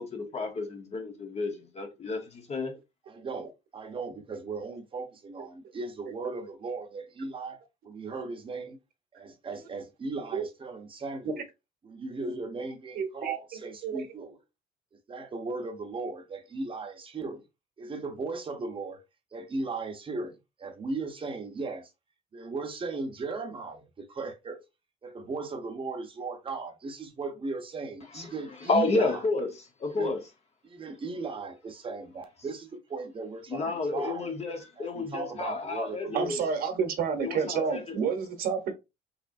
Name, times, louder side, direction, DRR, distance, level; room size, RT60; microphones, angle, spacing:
voice 1, 0.0-2.7 28.1-28.3 28.6-29.5 29.8-30.2 33.5-36.4 37.2-37.8, left 3 dB, 40° left, 1.1 m, -30 dB
voice 2, 3.1-7.6 7.8-8.8 9.1-11.4 11.8-14.4 15.1-17.4 17.8-19.0 19.3-21.9 22.3-24.6 25.0-29.2 29.9-30.2 30.6-34.3 34.8-36.3, right 3 dB, 30° right, 0.9 m, -37 dB
voice 3, 12.9-13.3 13.8-14.1 36.1-38.7, right 6 dB, 60° right, 1.0 m, -29 dB
3.7 x 3.3 x 2.6 m
cardioid pair, 110°, 17 cm